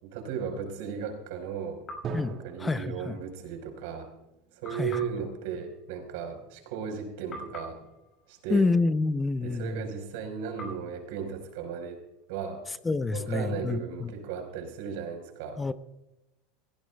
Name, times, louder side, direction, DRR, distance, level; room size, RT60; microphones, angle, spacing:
voice 1, 0.0-1.8 2.3-4.1 4.5-7.8 8.3-8.7 9.4-12.0 12.3-12.6 13.1-15.6, right 7 dB, 70° right, 5 dB, 4.6 m, -36 dB
sound 1, 1.9-3.2 4.6-7.0 7.3-9.6 10.6-12.4, equal, 35° left, 5.6 m, -48 dB
Drum, 2.0-5.7, right 4 dB, 40° right, 2.2 m, -43 dB
voice 2, 2.1-3.2 4.7-5.1 8.5-9.9 12.8-14.1 15.6-15.7, left 3 dB, 15° left, 13 dB, 0.6 m, -28 dB
20.5 x 16.0 x 2.3 m, 0.91 s
supercardioid pair, 125°, 0 cm